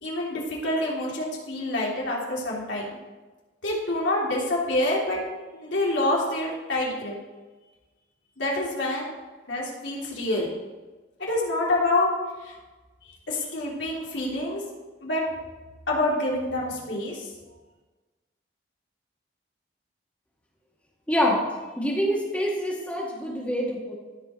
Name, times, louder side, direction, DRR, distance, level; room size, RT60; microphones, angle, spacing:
voice 1, 0.0-2.8 3.6-5.2 5.5-7.1 8.4-9.1 9.5-10.5 11.2-12.1 12.4-12.5 13.3-14.6 15.0-15.2 15.9-17.2, left 1 dB, 80° left, -4 dB, 3.2 m, -27 dB
voice 2, 21.1-21.4 21.8-23.9, equal, 5° left, -4 dB, 2.1 m, -26 dB
15.5 x 5.4 x 4.4 m, 1.3 s
head